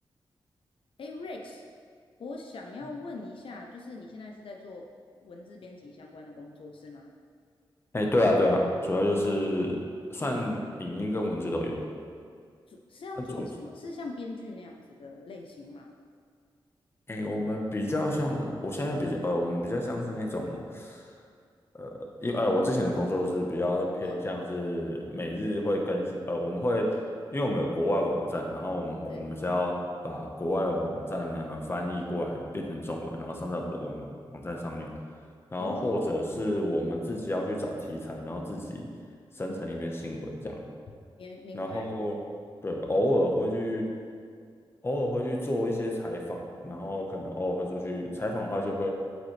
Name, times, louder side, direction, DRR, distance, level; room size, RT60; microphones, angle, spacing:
voice 1, 1.0-1.6 2.2-4.9 5.2-7.1 12.7-15.9 24.0-24.3 29.1-29.3 35.6-36.2 41.2-41.9, left 3 dB, 75° left, 1 dB, 0.6 m, -42 dB
voice 2, 7.9-9.8 10.1-11.8 13.3-13.4 17.1-21.1 21.7-26.9 27.3-29.8 30.0-34.9 35.5-38.9 39.3-40.6 41.5-42.2 42.6-43.9 44.8-48.9, left 1 dB, 25° left, 0 dB, 1.2 m, -29 dB
8.0 x 8.0 x 3.3 m, 2.1 s
wide cardioid pair, 105°, 9 cm